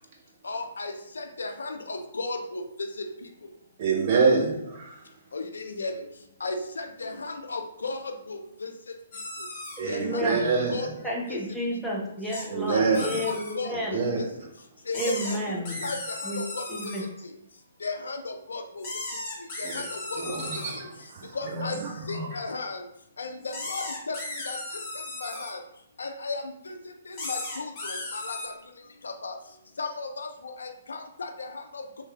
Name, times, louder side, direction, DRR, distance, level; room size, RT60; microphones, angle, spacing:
voice 1, 0.4-3.1 5.3-5.9 6.4-8.7 9.9-10.9 11.3-11.4 12.7-14.3 14.9-15.4 15.8-16.9 17.8-18.8 19.6-20.2 21.4-21.8 22.1-22.8 23.2-24.2 24.5-24.6 25.2-25.6 26.0-26.7 27.2-28.5 29.0-29.4 29.8-30.3 30.6-32.0, left 3 dB, 65° left, 6 dB, 0.3 m, -35 dB
voice 2, 3.8-5.0 9.8-10.9 12.5-13.2 13.7-14.3 19.6-19.8 20.2-22.4, right 4 dB, 40° right, -2 dB, 0.8 m, -27 dB
sound 1, 9.1-9.8 12.3-12.5 12.9-13.5 14.9-17.0 18.8-20.8 23.4-25.5 27.1-28.5, left 2 dB, 35° left, 1.1 m, -36 dB
voice 3, 9.8-10.5 11.0-14.1 14.9-15.9 16.2-16.4 16.7-17.0, equal, ahead, -6 dB, 0.7 m, -31 dB
3.1 x 3.1 x 2.3 m, 0.79 s
figure-of-eight pair, 125°, 0 cm